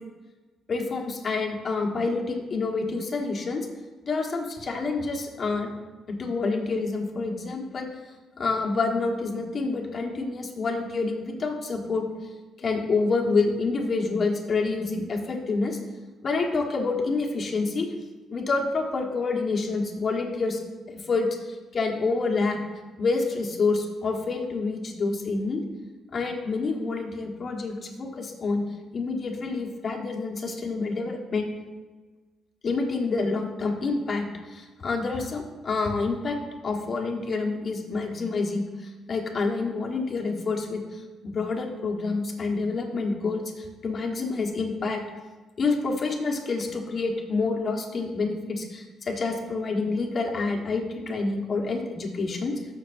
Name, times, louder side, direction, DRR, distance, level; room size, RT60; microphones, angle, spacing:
voice 1, 0.7-3.7 4.0-5.7 6.1-7.9 8.4-12.0 12.6-15.8 16.2-17.9 18.3-20.6 20.9-22.6 23.0-25.6 26.1-28.6 28.9-31.5 32.6-36.4 36.6-45.0 45.6-52.7, left 3 dB, 45° left, 1 dB, 1.4 m, -28 dB
14.0 x 6.6 x 2.6 m, 1.3 s
cardioid pair, 90°, 0 cm